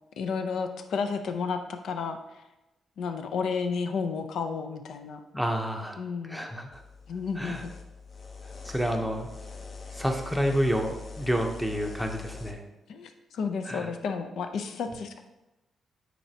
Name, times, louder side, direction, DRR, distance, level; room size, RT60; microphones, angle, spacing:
voice 1, 0.2-2.2 3.0-5.2 6.0-6.5 7.1-7.7 12.9-15.2, left 5 dB, 75° left, 7 dB, 0.6 m, -32 dB
voice 2, 5.3-6.0 6.3-6.7 7.4-7.6 8.6-9.3 9.9-12.6 13.7-13.9, equal, ahead, 3 dB, 0.7 m, -29 dB
sound 1, 6.7-12.5, left 4 dB, 40° left, 0.8 m, -43 dB
9.1 x 4.2 x 2.8 m, 0.98 s
cardioid pair, 130°, 0 cm